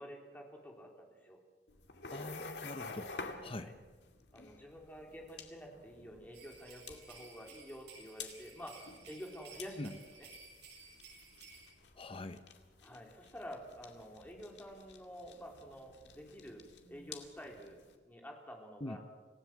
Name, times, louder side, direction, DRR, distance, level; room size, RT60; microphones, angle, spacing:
voice 1, 0.0-1.4 3.5-3.7 4.3-10.3 12.8-16.6 16.9-19.0, equal, 10° left, 1 dB, 3.6 m, -49 dB
sound 1, 1.7-17.9, left 4 dB, 80° left, 2.3 m, -51 dB
voice 2, 2.1-3.1 3.4-3.7 9.8-9.9 11.9-12.4 18.8-19.0, left 2 dB, 35° left, 9 dB, 0.9 m, -43 dB
sound 2, 6.3-11.7, right 3 dB, 70° right, 7.6 m, -56 dB
27.0 x 17.0 x 7.5 m, 1.3 s
head